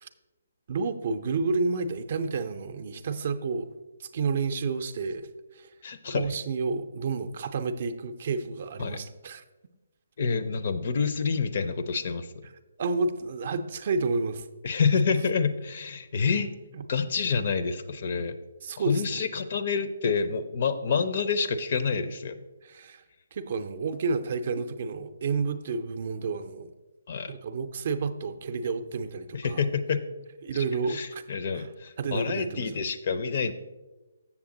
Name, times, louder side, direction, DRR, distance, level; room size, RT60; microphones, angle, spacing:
voice 1, 0.7-3.7 4.0-5.3 5.5-5.7 6.1-9.4 12.8-14.5 16.7-16.9 18.6-19.2 22.6-23.0 23.3-26.7 27.3-29.6 30.4-31.2 31.5-31.7 32.0-32.6, right 4 dB, 45° right, 9 dB, 0.5 m, -30 dB
voice 2, 5.8-6.3 8.8-9.0 10.2-12.5 14.6-16.5 16.9-18.4 18.8-22.3 27.1-27.3 29.3-30.0 30.5-33.5, left 5 dB, 50° left, 10 dB, 0.6 m, -28 dB
7.3 x 7.0 x 3.8 m, 1.1 s
figure-of-eight pair, 140°, 0 cm